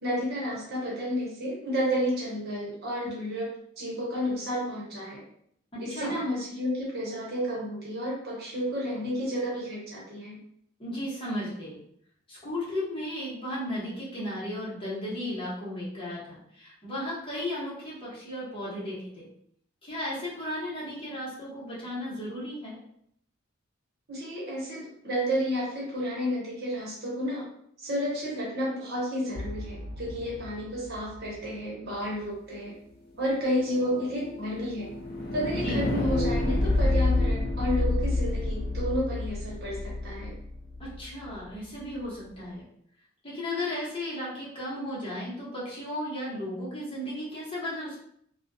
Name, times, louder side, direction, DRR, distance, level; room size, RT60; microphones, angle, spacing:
voice 1, 0.0-3.5 3.8-5.2 5.8-10.4 24.1-27.5 27.8-32.7 33.2-34.9 35.3-40.3, equal, 55° right, -5 dB, 1.0 m, -31 dB
voice 2, 5.7-6.1 10.8-11.8 12.3-19.3 19.8-22.8 35.6-35.8 40.8-42.6 43.2-48.0, left 1 dB, 30° left, -8 dB, 1.0 m, -35 dB
sound 1, 29.3-31.5 33.3-41.4, left 2 dB, 55° left, 0.7 m, -30 dB
2.4 x 2.3 x 2.6 m, 0.68 s
head